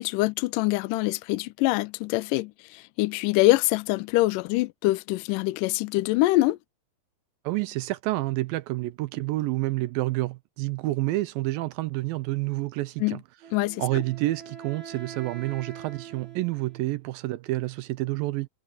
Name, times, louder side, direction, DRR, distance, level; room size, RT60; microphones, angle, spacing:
voice 1, 0.0-6.6 13.0-13.2 13.5-14.0, left 19 dB, 80° left, 1.9 m, -24 dB
voice 2, 7.4-13.2 13.8-18.5, right 18 dB, 80° right, 2.2 m, -29 dB
Wind instrument woodwind instrument, 13.4-17.0, right 8 dB, 30° right, 3.7 m, -44 dB
omnidirectional pair, 4.4 m